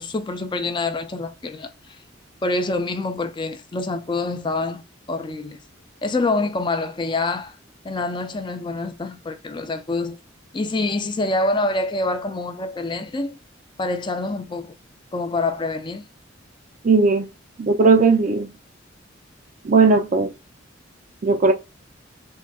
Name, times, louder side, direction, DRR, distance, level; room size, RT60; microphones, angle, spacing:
voice 1, 0.0-1.7 2.4-4.8 5.1-5.6 6.0-7.6 7.8-10.2 10.5-13.4 13.8-14.7 15.1-16.0, left 2 dB, 25° left, 0.4 m, -26 dB
voice 2, 16.8-17.3 17.6-18.5 19.6-20.3 21.2-21.5, right 4 dB, 40° right, 0.4 m, -17 dB
3.7 x 2.2 x 2.2 m
head